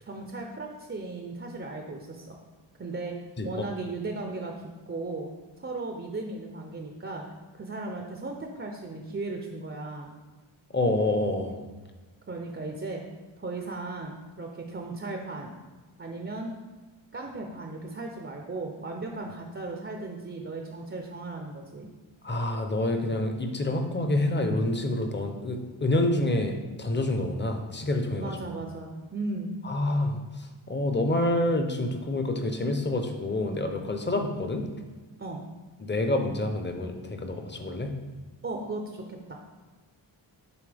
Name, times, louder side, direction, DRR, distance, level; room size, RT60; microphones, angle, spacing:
voice 1, 0.0-2.4 2.8-3.2 3.4-4.5 4.9-5.3 5.6-7.3 7.5-10.1 12.3-13.0 13.4-15.5 16.0-16.5 17.1-21.9 28.2-29.6 35.2-35.4 38.4-39.4, right 3 dB, 25° right, 2 dB, 0.5 m, -36 dB
voice 2, 10.7-11.6 22.2-28.3 29.6-34.6 35.8-37.9, left 1 dB, 25° left, 5 dB, 0.6 m, -27 dB
6.9 x 4.5 x 3.4 m, 1.3 s
wide cardioid pair, 110°, 48 cm